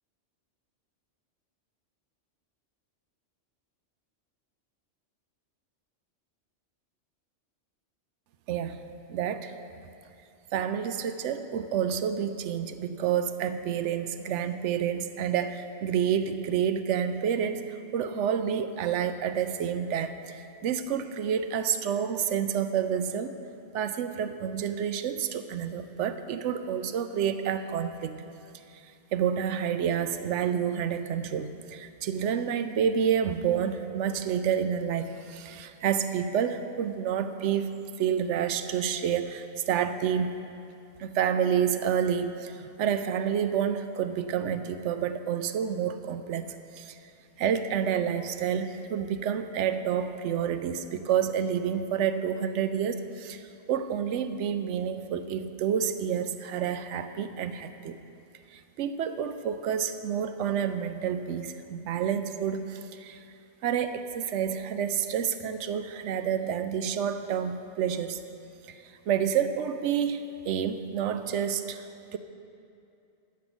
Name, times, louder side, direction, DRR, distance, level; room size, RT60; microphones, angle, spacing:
voice 1, 8.5-8.8 9.1-9.5 10.5-23.3 23.7-28.3 28.8-37.7 38.0-40.4 41.0-47.0 47.4-58.0 58.5-63.2 63.6-68.2 68.7-71.9 72.1-72.2, right 8 dB, 75° right, 10 dB, 0.9 m, -29 dB
11.5 x 7.6 x 6.2 m, 2.6 s
omnidirectional pair, 1.2 m